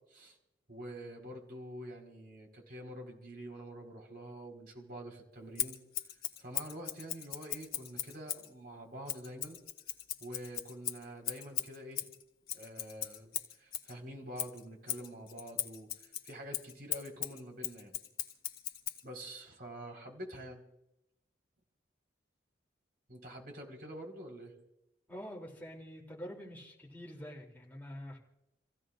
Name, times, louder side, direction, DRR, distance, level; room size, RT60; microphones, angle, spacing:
voice 1, 0.7-5.8 6.4-9.6 10.2-12.1 12.5-18.0 19.0-20.6 23.1-24.5, right 1 dB, 55° right, 1 dB, 4.4 m, -47 dB
Scissors, 5.6-8.5 9.1-13.9 14.4-19.0, left 11 dB, 55° left, 1.4 m, -39 dB
voice 2, 25.1-28.2, equal, 10° left, -3 dB, 3.2 m, -46 dB
29.0 x 16.0 x 2.5 m, 0.86 s
head